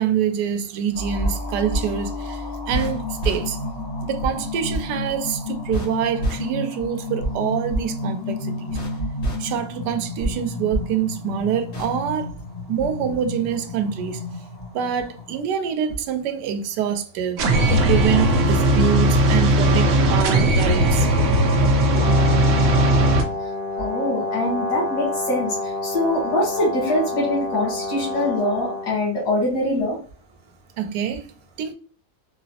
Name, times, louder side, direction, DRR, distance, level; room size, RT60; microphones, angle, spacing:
voice 1, 0.0-2.4 2.7-3.6 4.0-8.7 9.4-12.3 12.7-14.2 14.7-17.4 17.7-21.1 30.8-31.2 31.6-31.7, right 8 dB, 85° right, 1.2 m, -25 dB
sound 1, 0.9-15.4, left 1 dB, 35° left, 1.1 m, -29 dB
sound 2, 17.4-23.2, right 1 dB, 60° right, 0.8 m, -18 dB
Brass instrument, 21.9-28.9, left 2 dB, 15° right, 0.6 m, -28 dB
voice 2, 23.8-30.0, left 1 dB, 90° left, 1.8 m, -23 dB
4.2 x 2.0 x 2.7 m
omnidirectional pair, 1.8 m